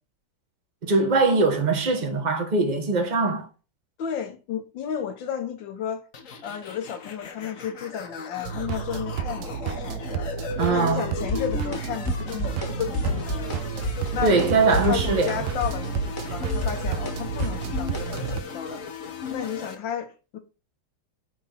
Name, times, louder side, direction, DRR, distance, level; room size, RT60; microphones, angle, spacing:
voice 1, 0.8-3.5 10.6-11.1 14.2-15.5, right 3 dB, 25° right, 1.2 m, -22 dB
voice 2, 4.0-6.0 6.4-10.3 10.7-13.6 14.1-18.8 19.3-20.4, left 8 dB, 65° left, 1.6 m, -33 dB
sound 1, 6.1-19.7, left 5 dB, 45° left, 1.2 m, -36 dB
sound 2, 8.4-18.4, right 9 dB, 75° right, 1.0 m, -32 dB
sound 3, 11.3-11.8 12.0-12.7 12.9-13.6 13.8-14.5 14.7-18.4, equal, 10° left, 1.4 m, -29 dB
9.5 x 3.6 x 5.7 m
omnidirectional pair, 2.3 m